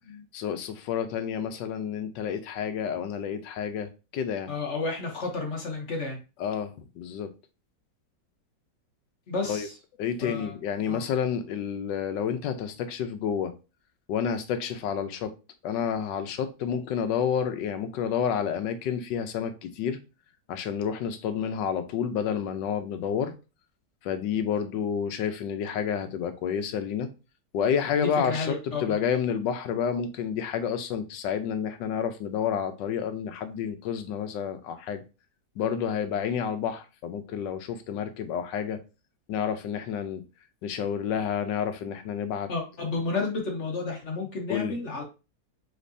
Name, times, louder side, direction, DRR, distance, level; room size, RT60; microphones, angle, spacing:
voice 1, 0.3-4.5 6.4-7.3 9.5-9.7 10.0-13.5 14.1-15.3 15.6-20.0 20.5-23.3 24.0-27.1 27.5-35.0 35.6-38.8 39.3-40.2 40.6-42.5 44.5-44.7, left 7 dB, 85° left, 1.3 m, -29 dB
voice 2, 4.5-6.2 9.3-9.8 10.2-10.5 10.9-11.0 28.0-29.0 42.5-45.0, left 3 dB, 50° left, 1.1 m, -31 dB
5.2 x 3.6 x 2.6 m
omnidirectional pair, 1.9 m